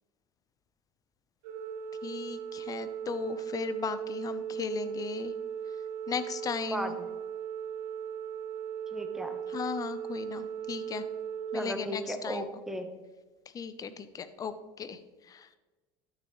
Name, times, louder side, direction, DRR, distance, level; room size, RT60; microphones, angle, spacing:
Organ, 1.4-12.5, right 8 dB, 70° right, 1.3 m, -38 dB
voice 1, 2.0-5.3 6.1-7.0 9.5-11.0 11.5-12.5 13.5-15.0 15.3-15.5, left 6 dB, 30° left, 11 dB, 0.7 m, -36 dB
voice 2, 6.7-7.1 8.9-9.4 11.5-12.9, equal, 5° right, 6 dB, 1.1 m, -36 dB
12.0 x 6.7 x 3.2 m, 1.2 s
supercardioid pair, 95°, 12 cm